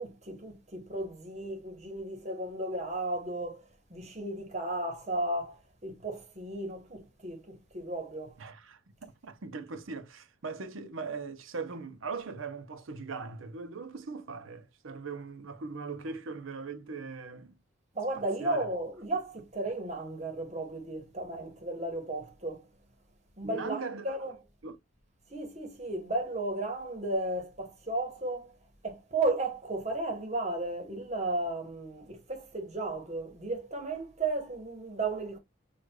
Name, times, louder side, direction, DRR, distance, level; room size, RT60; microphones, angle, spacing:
voice 1, 0.0-8.3 17.9-22.6 23.4-24.3 25.3-28.5 28.8-35.4, right 2 dB, 35° right, 1.1 m, -34 dB
voice 2, 8.4-17.6 18.1-18.7 23.4-24.2 24.6-24.8, right 4 dB, 75° right, 0.7 m, -40 dB
6.2 x 2.5 x 2.3 m
head